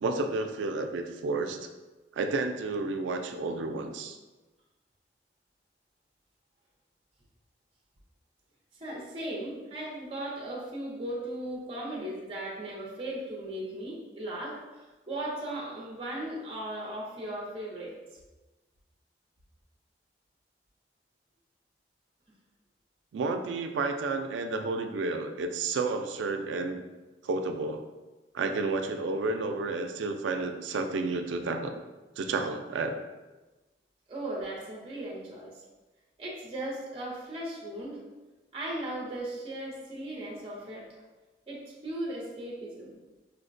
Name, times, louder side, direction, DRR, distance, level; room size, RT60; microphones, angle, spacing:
voice 1, 0.0-1.7 2.1-4.2 23.1-26.8 27.2-27.8 28.3-31.8 32.2-33.0, right 3 dB, 90° right, 6 dB, 0.3 m, -31 dB
voice 2, 8.8-17.9 34.1-35.5 36.2-38.0 38.5-40.8 41.5-42.9, right 1 dB, 30° right, -4 dB, 0.6 m, -37 dB
4.5 x 2.1 x 2.5 m, 1.2 s
head